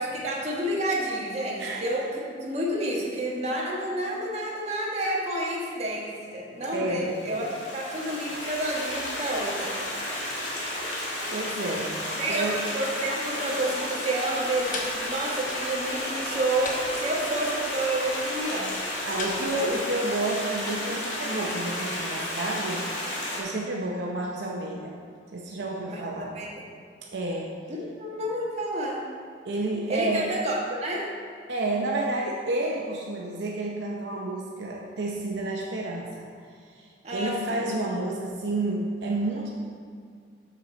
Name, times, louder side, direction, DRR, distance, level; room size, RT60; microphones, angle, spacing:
voice 1, 0.0-9.7 12.2-18.7 25.9-26.5 27.7-29.0 29.9-31.1 37.0-37.6, right 1 dB, 35° right, -4 dB, 1.4 m, -30 dB
voice 2, 1.6-2.1 6.7-7.3 11.3-12.0 12.3-12.7 19.0-22.8 23.4-25.0 25.3-26.4 27.1-27.5 29.4-30.3 31.5-36.3 36.7-39.5, right 2 dB, 70° right, -2 dB, 0.7 m, -30 dB
Stream, 7.1-23.4, left 1 dB, 90° left, 1.7 m, -32 dB
sound 1, 14.4-19.8, left 2 dB, 45° left, 0.9 m, -41 dB
6.7 x 6.4 x 4.4 m, 2.2 s
head